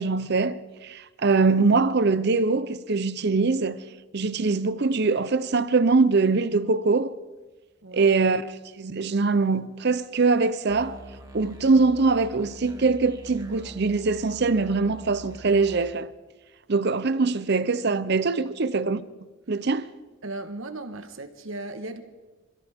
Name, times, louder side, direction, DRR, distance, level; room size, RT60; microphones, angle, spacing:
voice 1, 0.0-3.8 4.1-7.1 7.9-8.4 8.8-11.0 11.3-16.1 16.7-19.0 19.5-19.9, right 4 dB, 50° right, 0.7 m, -23 dB
voice 2, 7.8-8.2 20.2-22.0, right 2 dB, 70° right, 1.3 m, -36 dB
sound 1, 10.7-15.9, equal, 15° right, 1.7 m, -43 dB
27.5 x 14.5 x 3.6 m
head